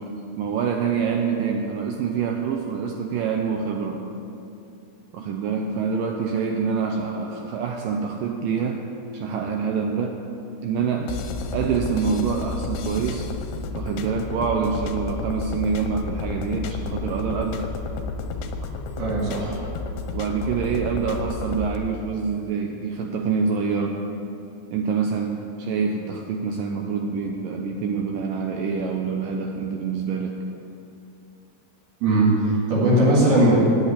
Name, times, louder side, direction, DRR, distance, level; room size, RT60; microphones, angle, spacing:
voice 1, 0.0-4.1 5.1-8.8 9.1-10.2 10.6-11.2 11.5-13.3 13.7-17.7 20.1-24.0 24.7-30.4, right 5 dB, 85° right, 2 dB, 2.0 m, -26 dB
sound 1, 11.1-21.8, left 4 dB, 90° left, 2.8 m, -31 dB
voice 2, 19.0-19.6 32.0-33.6, right 1 dB, 70° right, -8 dB, 3.9 m, -19 dB
9.6 x 9.0 x 8.3 m, 2.7 s
omnidirectional pair, 4.7 m